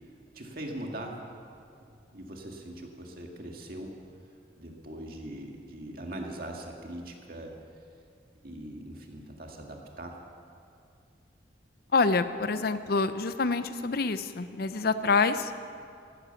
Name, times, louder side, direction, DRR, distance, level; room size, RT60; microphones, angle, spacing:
voice 1, 0.3-1.2 2.1-3.9 4.6-7.5 8.4-10.2, right 1 dB, 50° right, 1 dB, 2.1 m, -41 dB
voice 2, 11.9-15.5, left 4 dB, 55° left, 12 dB, 0.6 m, -26 dB
15.0 x 12.5 x 7.1 m, 2.4 s
head